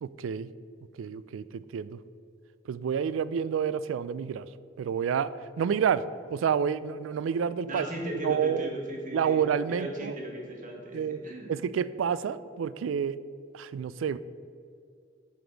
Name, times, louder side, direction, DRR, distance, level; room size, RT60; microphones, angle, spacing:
voice 1, 0.0-0.5 1.0-2.0 2.7-4.5 4.8-5.3 5.6-6.0 6.3-7.9 8.2-8.7 9.1-10.2 10.9-11.2 11.5-13.2 13.5-14.2, right 7 dB, 90° right, 16 dB, 0.3 m, -29 dB
voice 2, 7.7-11.5, right 1 dB, 45° right, 0 dB, 1.4 m, -37 dB
7.6 x 5.3 x 4.6 m, 2.4 s
head